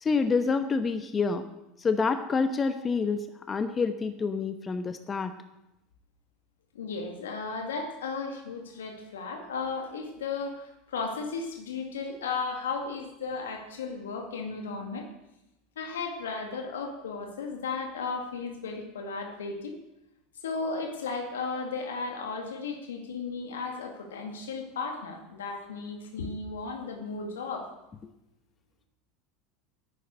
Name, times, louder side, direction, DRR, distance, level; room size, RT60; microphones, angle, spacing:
voice 1, 0.0-1.5 1.8-5.3, left 4 dB, 25° left, 9 dB, 1.0 m, -27 dB
voice 2, 6.7-15.1 15.8-19.8 20.4-27.7, left 4 dB, 85° left, 3 dB, 2.2 m, -35 dB
10.5 x 9.5 x 7.8 m, 0.88 s
hypercardioid pair, 85°, 0 cm